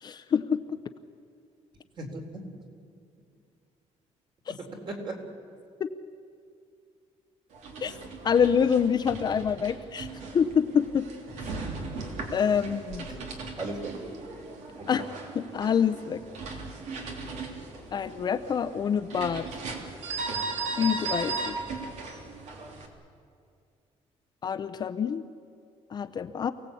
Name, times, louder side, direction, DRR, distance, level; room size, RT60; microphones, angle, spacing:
voice 1, 0.0-0.8 7.8-7.9 8.2-10.1 10.3-11.1 12.3-13.1 14.9-15.1 15.3-16.2 17.9-19.5 20.8-21.6 24.4-25.2 25.9-26.5, left 7 dB, 35° left, 7 dB, 0.7 m, -26 dB
voice 2, 2.0-2.5 4.5-5.3 13.1-13.2 13.6-14.0 14.8-14.9, right 2 dB, 40° right, 2 dB, 4.0 m, -37 dB
sound 1, 7.5-22.9, right 3 dB, 75° right, 3.4 m, -37 dB
27.5 x 18.0 x 8.5 m, 2.4 s
cardioid pair, 160°, 12 cm